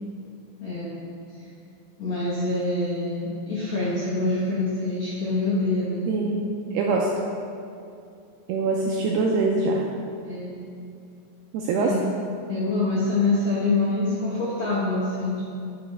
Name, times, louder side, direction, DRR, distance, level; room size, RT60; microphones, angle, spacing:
voice 1, 0.6-0.9 2.0-6.0 10.2-10.6 11.8-12.0 12.5-15.4, left 2 dB, 75° left, -9 dB, 1.6 m, -25 dB
voice 2, 6.1-6.4 6.7-7.1 8.5-9.8 11.5-12.0, right 3 dB, 85° right, -1 dB, 2.3 m, -23 dB
11.0 x 5.9 x 3.3 m, 2.5 s
omnidirectional pair, 5.2 m